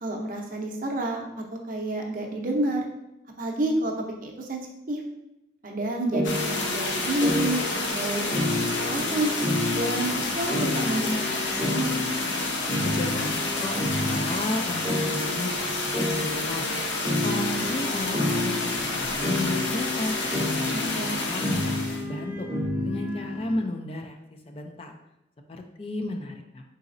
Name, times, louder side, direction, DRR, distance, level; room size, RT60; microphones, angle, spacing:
voice 1, 0.0-1.3 1.5-2.8 3.4-3.9 4.2-4.6 4.9-5.0 5.6-9.3 9.7-12.1 20.7-21.2, right 1 dB, 45° right, 1 dB, 0.6 m, -29 dB
sound 1, 6.1-23.6, left 1 dB, 5° right, 0.7 m, -31 dB
sound 2, 6.2-22.0, left 2 dB, 85° left, 0.7 m, -29 dB
voice 2, 12.8-16.7 17.2-20.2 20.6-22.5 22.8-24.2 24.5-24.9 25.5-26.6, left 1 dB, 30° left, 5 dB, 0.3 m, -33 dB
4.0 x 3.8 x 2.5 m, 0.88 s
head